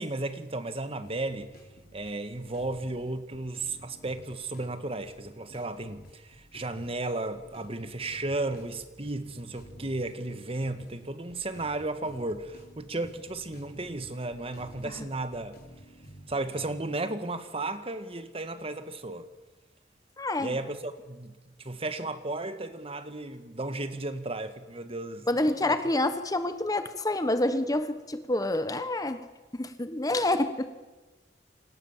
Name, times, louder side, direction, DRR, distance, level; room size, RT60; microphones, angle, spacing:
voice 1, 0.0-1.5 1.9-15.6 16.3-19.3 20.4-21.3 21.6-25.3 25.6-25.7, right 2 dB, 30° right, 1.7 m, -34 dB
sound 1, 1.0-17.0, equal, 55° left, 4.7 m, -52 dB
voice 2, 20.2-20.6 25.3-29.3 29.5-30.7, left 1 dB, 20° left, 1.2 m, -28 dB
28.5 x 25.5 x 7.4 m
head